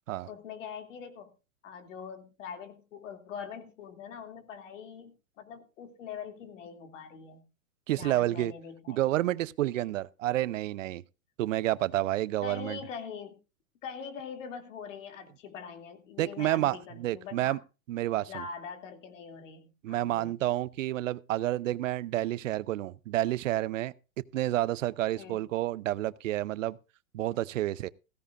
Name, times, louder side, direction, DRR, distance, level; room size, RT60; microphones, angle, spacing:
voice 1, 0.3-1.3 1.6-7.4 8.0-9.1 12.4-13.4 13.8-17.6 18.3-20.4 25.2-25.4, left 6 dB, 65° left, 2.7 m, -43 dB
voice 2, 7.9-8.5 8.9-11.0 11.4-12.8 16.2-17.6 17.9-18.4 19.8-23.9 24.3-26.8 27.1-27.9, right 15 dB, 65° right, 0.7 m, -29 dB
16.0 x 15.0 x 2.5 m
hypercardioid pair, 150°, 41 cm